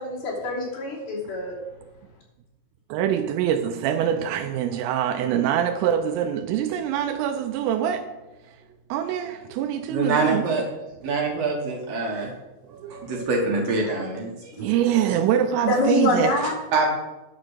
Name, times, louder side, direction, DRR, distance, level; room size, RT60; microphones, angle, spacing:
voice 1, 0.0-1.5 14.6-14.7 15.7-16.5, left 2 dB, 55° left, 4.6 m, -25 dB
voice 2, 2.9-8.1 8.5-8.6 8.9-10.5 11.0-11.1 12.7-13.1 14.6-16.4, right 9 dB, 90° right, 3.3 m, -24 dB
voice 3, 9.9-10.6 11.0-12.3 12.7-14.5 16.4-16.9, right 3 dB, 65° right, 2.5 m, -25 dB
11.0 x 6.5 x 6.5 m
omnidirectional pair, 5.7 m